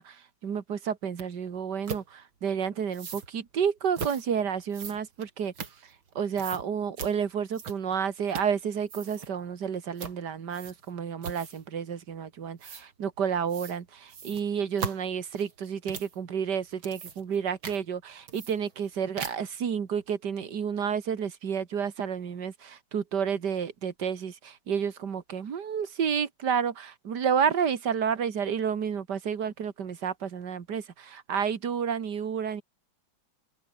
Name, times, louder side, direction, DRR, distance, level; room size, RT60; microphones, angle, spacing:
voice 1, 0.0-5.5 5.8-32.6, right 7 dB, 60° right, 2.3 m, -30 dB
sound 1, 1.2-1.3 1.9-2.1 2.9-3.3 3.9-4.2 4.7-6.1 6.4-6.6 7.0-7.1 7.5-8.0 8.3-8.6 8.8-9.3 10.0-10.2 10.5-10.9 11.2-11.7 12.6-12.8 13.5-13.8 14.1-16.2 16.7-17.4 17.6-17.8 18.3-18.9 19.2-19.6, right 6 dB, 85° right, 3.5 m, -39 dB
omnidirectional pair, 2.1 m